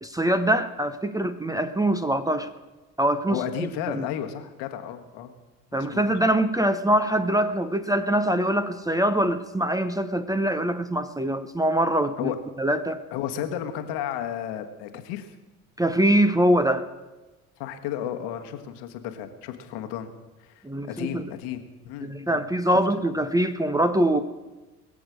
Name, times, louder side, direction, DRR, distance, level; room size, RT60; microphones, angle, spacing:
voice 1, 0.0-2.5 3.0-4.1 5.7-12.3 12.6-13.0 15.8-16.9 20.6-21.3 22.0-24.2, right 1 dB, 10° right, 10 dB, 0.9 m, -23 dB
voice 2, 3.3-5.3 5.7-6.0 12.2-12.4 13.1-15.3 17.6-20.1 20.4-22.4, left 10 dB, 60° left, 6 dB, 1.6 m, -33 dB
21.5 x 7.8 x 6.4 m, 1.1 s
figure-of-eight pair, 55°, 46 cm